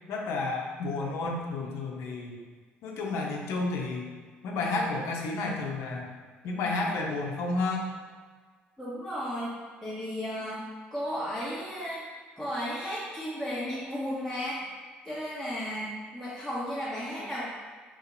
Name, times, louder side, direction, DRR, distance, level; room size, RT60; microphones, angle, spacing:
voice 1, 0.1-2.4 2.8-4.1 4.4-6.1 6.4-7.9, left 3 dB, 65° left, 0 dB, 0.6 m, -31 dB
voice 2, 8.8-9.5 9.8-10.6 10.9-12.0 12.4-14.6 15.1-17.5, equal, ahead, -11 dB, 1.2 m, -34 dB
3.0 x 2.7 x 3.9 m, 1.5 s
hypercardioid pair, 55°, 5 cm